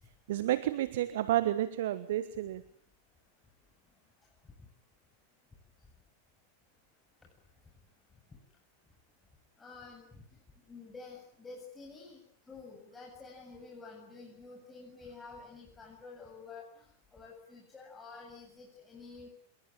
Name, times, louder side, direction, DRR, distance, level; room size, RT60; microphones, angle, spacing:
voice 1, 0.3-2.6, right 13 dB, 55° right, 15 dB, 1.3 m, -30 dB
voice 2, 9.6-10.2 10.7-12.2 12.5-16.8 17.1-19.3, left 4 dB, 15° left, -2 dB, 7.9 m, -49 dB
27.5 x 22.0 x 9.1 m, 0.65 s
figure-of-eight pair, 90°, 0 cm